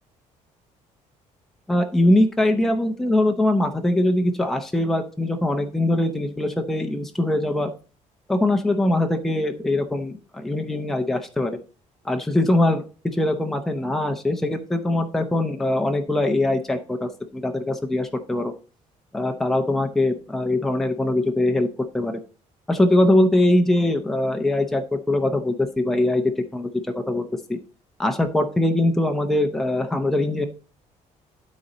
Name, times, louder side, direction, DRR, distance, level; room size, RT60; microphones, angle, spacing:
voice 1, 1.7-7.7 8.3-11.6 12.0-12.9 13.1-18.5 19.1-21.7 21.9-22.1 22.7-27.6 28.0-30.5, left 1 dB, 5° left, 4 dB, 0.6 m, -22 dB
12.0 x 4.2 x 3.9 m, 0.37 s
cardioid pair, 175°, 13 cm